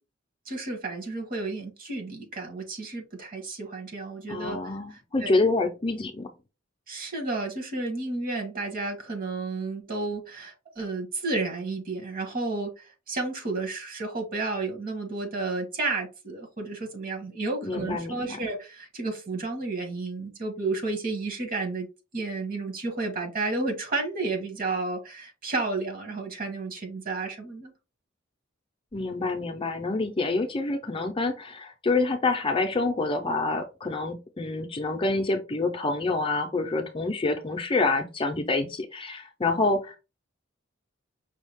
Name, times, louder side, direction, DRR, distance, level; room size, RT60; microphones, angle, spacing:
voice 1, 0.5-4.6 5.2-5.3 6.9-21.9 22.1-27.7, right 3 dB, 45° right, 1.4 m, -32 dB
voice 2, 4.3-6.3 17.6-18.4 28.9-40.0, left 3 dB, 25° left, 0.5 m, -27 dB
5.5 x 2.3 x 3.4 m
head